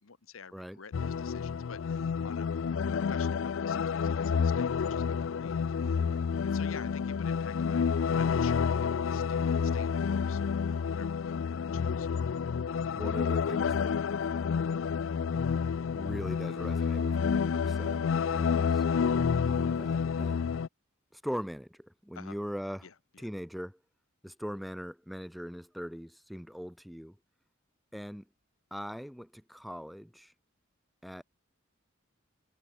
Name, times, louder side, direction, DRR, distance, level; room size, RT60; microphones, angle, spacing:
voice 1, 0.0-2.5 2.9-7.9 8.1-12.3 22.1-22.4 22.8-23.3, left 6 dB, 85° left, 1.0 m, -49 dB
sound 1, 0.9-20.7, left 6 dB, 70° left, 0.4 m, -29 dB
voice 2, 13.0-13.9 14.2-14.5 15.9-18.8 19.4-20.4 21.1-22.9 23.2-23.8 24.2-27.2 27.9-28.3 28.7-30.3 31.0-31.2, equal, ahead, 0.4 m, -41 dB
head